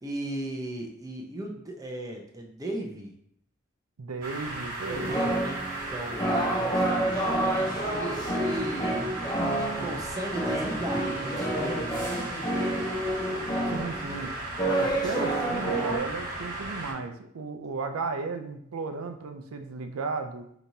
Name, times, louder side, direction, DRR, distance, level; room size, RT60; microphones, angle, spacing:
voice 1, 0.0-3.1 4.8-12.3, right 1 dB, 15° right, 0 dB, 0.6 m, -37 dB
voice 2, 4.0-5.3 13.7-14.3 14.8-20.5, right 4 dB, 90° right, 6 dB, 0.5 m, -35 dB
sound 1, 4.2-16.9, right 2 dB, 40° right, 1.3 m, -36 dB
sound 2, 4.9-16.0, right 1 dB, 20° left, 0.6 m, -29 dB
5.2 x 2.9 x 2.7 m, 0.70 s
head